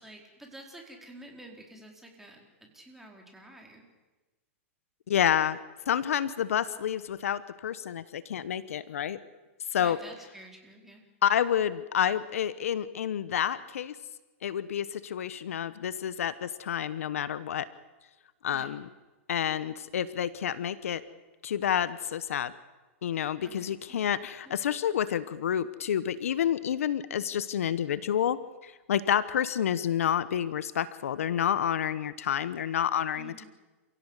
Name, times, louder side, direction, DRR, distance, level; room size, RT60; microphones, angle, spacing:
voice 1, 0.0-3.9 9.8-11.0 18.5-18.8 23.4-24.1 24.4-24.5 33.1-33.5, right 1 dB, 5° right, 1 dB, 4.5 m, -50 dB
voice 2, 5.1-5.6 5.9-9.2 9.7-10.0 11.2-14.0 14.4-17.7 18.4-18.9 19.3-21.0 21.4-22.5 23.0-33.4, left 9 dB, 80° left, 16 dB, 1.1 m, -29 dB
28.0 x 16.5 x 8.2 m, 1.2 s
hypercardioid pair, 135°, 7 cm